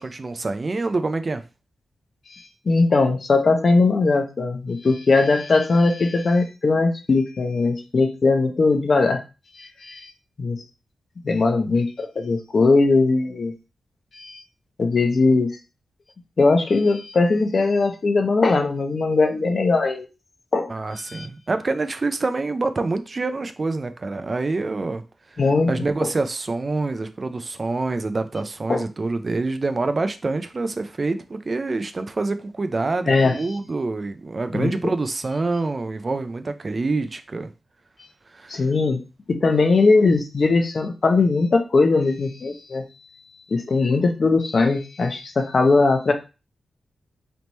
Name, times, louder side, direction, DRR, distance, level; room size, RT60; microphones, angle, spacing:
voice 1, 0.0-1.4 20.7-25.0 25.3-25.4 25.7-37.5 38.3-38.6, right 3 dB, 40° right, 0.4 m, -26 dB
voice 2, 2.3-9.2 9.6-10.1 10.4-10.6 11.2-13.5 14.1-14.4 14.8-15.5 16.4-20.1 20.5-20.7 21.1-21.3 25.4-25.7 28.7-28.8 33.1-33.3 34.5-34.7 38.5-39.0 39.3-42.8 43.5-46.1, left 3 dB, 50° left, 0.8 m, -20 dB
3.4 x 3.0 x 4.1 m
cardioid pair, 80°, 0 cm